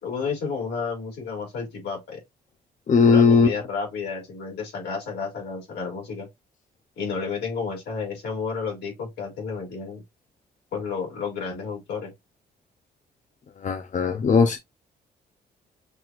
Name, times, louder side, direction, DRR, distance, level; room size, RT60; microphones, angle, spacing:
voice 1, 0.0-2.2 3.0-6.3 7.0-10.0 10.7-12.1, left 5 dB, 80° left, 3.3 m, -31 dB
voice 2, 2.9-3.5 13.6-14.6, left 5 dB, 45° left, 0.6 m, -18 dB
6.1 x 2.9 x 2.5 m
supercardioid pair, 65°, 17 cm